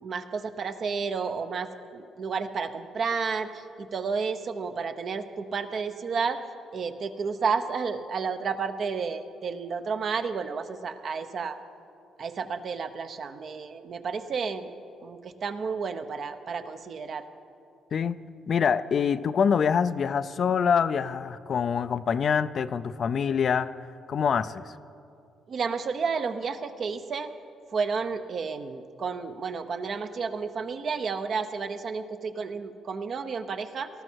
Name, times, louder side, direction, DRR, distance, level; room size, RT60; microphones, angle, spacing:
voice 1, 0.0-6.4 6.7-11.6 12.2-14.7 15.0-17.2 25.5-27.3 27.7-33.9, right 5 dB, 55° right, 8 dB, 0.8 m, -31 dB
voice 2, 18.5-23.7 24.1-24.7, left 7 dB, 55° left, 14 dB, 0.4 m, -25 dB
18.5 x 13.5 x 4.6 m, 2.6 s
cardioid pair, 90°, 0 cm